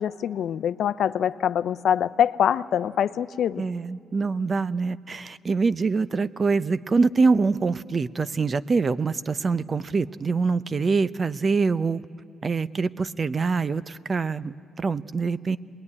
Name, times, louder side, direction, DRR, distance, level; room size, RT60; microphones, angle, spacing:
voice 1, 0.0-3.6, left 9 dB, 70° left, 14 dB, 0.6 m, -24 dB
voice 2, 3.6-12.0 12.4-15.6, right 4 dB, 35° right, 15 dB, 0.6 m, -24 dB
25.5 x 20.5 x 9.8 m, 2.3 s
cardioid pair, 90°, 0 cm